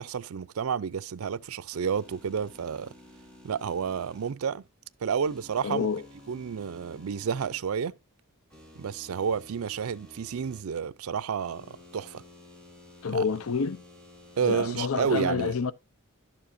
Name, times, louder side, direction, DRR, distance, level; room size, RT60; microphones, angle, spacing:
voice 1, 0.0-2.9 3.4-4.6 5.0-5.9 6.3-7.9 8.8-12.2 13.1-13.2 14.4-15.5, right 7 dB, 85° right, 0.4 m, -30 dB
sound 1, 1.7-4.3 5.2-7.6 8.5-10.6 11.4-14.5, left 1 dB, 5° left, 2.2 m, -52 dB
voice 2, 5.6-6.0 13.0-13.8 14.4-15.7, left 5 dB, 75° left, 0.6 m, -28 dB
12.0 x 7.0 x 2.6 m
head